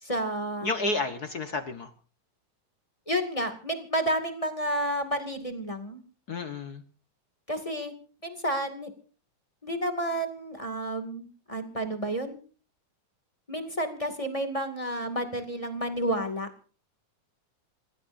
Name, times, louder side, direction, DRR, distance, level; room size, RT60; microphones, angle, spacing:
voice 1, 0.0-0.7 3.1-6.0 7.5-7.9 8.2-8.9 9.6-12.4 13.5-16.5, right 1 dB, 10° left, 6 dB, 1.9 m, -30 dB
voice 2, 0.6-1.9 6.3-6.8, left 3 dB, 60° left, 8 dB, 1.0 m, -31 dB
27.0 x 18.5 x 2.7 m, 0.40 s
omnidirectional pair, 3.6 m